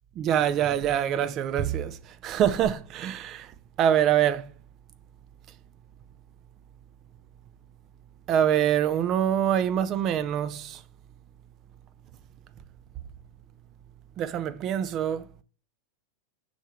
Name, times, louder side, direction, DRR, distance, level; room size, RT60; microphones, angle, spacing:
voice 1, 0.2-2.0 2.2-3.5 3.8-4.4 8.3-10.8 14.2-15.2, right 10 dB, 35° right, 0.5 m, -25 dB
6.3 x 3.4 x 4.4 m
figure-of-eight pair, 90°, 0 cm